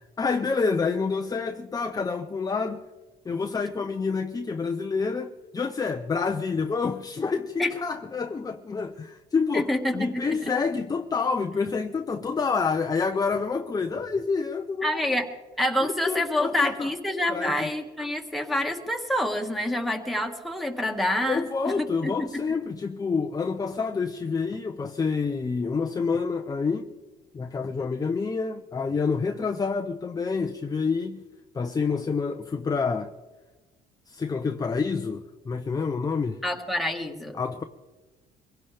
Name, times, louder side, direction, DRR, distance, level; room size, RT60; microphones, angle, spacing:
voice 1, 0.2-2.8 3.3-9.7 9.9-15.0 15.8-16.9 17.3-17.7 21.2-26.9 27.3-31.2 31.5-33.1 34.1-36.4 37.4-37.6, left 5 dB, 20° left, 0.7 m, -28 dB
voice 2, 9.5-10.5 14.8-15.3 15.6-22.4 36.4-37.4, left 1 dB, ahead, 1.9 m, -27 dB
24.0 x 16.5 x 3.5 m
cardioid pair, 110°, 17 cm